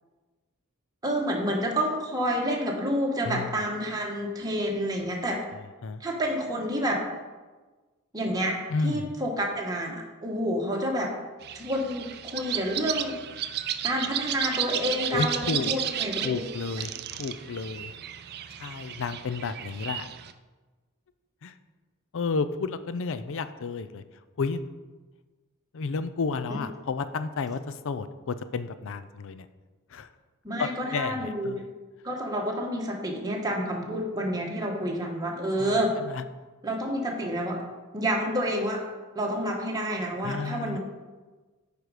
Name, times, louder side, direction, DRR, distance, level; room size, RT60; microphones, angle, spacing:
voice 1, 1.0-5.4 6.0-7.0 8.1-8.6 8.8-11.1 11.5-12.1 12.3-13.2 13.8-16.4 26.5-26.6 30.4-31.5 32.0-35.9 36.6-37.6 37.9-38.8 39.1-40.8, equal, 20° right, -1 dB, 1.3 m, -29 dB
voice 2, 3.2-3.6 5.8-6.0 8.7-9.1 15.1-15.7 16.2-17.9 18.6-20.1 21.4-21.6 22.1-24.0 24.4-24.6 25.7-29.5 29.9-30.1 30.6-31.7 35.6-36.2 40.2-40.8, left 4 dB, 60° left, 12 dB, 0.5 m, -31 dB
sound 1, 11.4-20.3, right 10 dB, 50° right, 0.4 m, -33 dB
9.0 x 5.1 x 4.9 m, 1.3 s
head